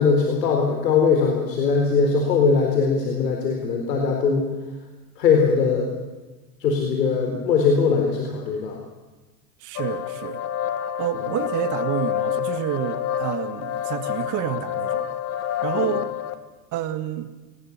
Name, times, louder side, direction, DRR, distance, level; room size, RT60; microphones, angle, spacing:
voice 1, 0.0-4.5 5.2-5.9 6.6-8.8 15.7-15.9, left 5 dB, 80° left, 2 dB, 4.2 m, -20 dB
voice 2, 9.6-10.4 11.0-15.2 15.6-16.1 16.7-17.3, right 11 dB, 40° right, 10 dB, 1.8 m, -29 dB
sound 1, 9.8-16.3, left 10 dB, 30° left, 1.5 m, -28 dB
22.0 x 20.0 x 7.4 m, 1.2 s
hypercardioid pair, 120°, 48 cm